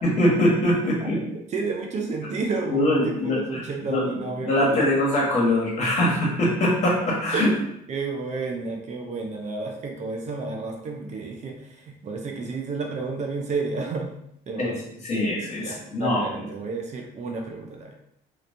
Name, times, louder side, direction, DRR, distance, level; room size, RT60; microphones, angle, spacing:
voice 1, 0.0-1.2 2.7-4.0 4.4-7.5 14.6-14.7 15.0-16.4, left 1 dB, 40° left, -4 dB, 1.3 m, -23 dB
voice 2, 1.0-4.9 7.3-14.1 14.5-14.8 15.6-17.9, right 4 dB, 45° right, 2 dB, 0.6 m, -31 dB
3.1 x 2.9 x 2.6 m, 0.75 s
cardioid pair, 110°, 17 cm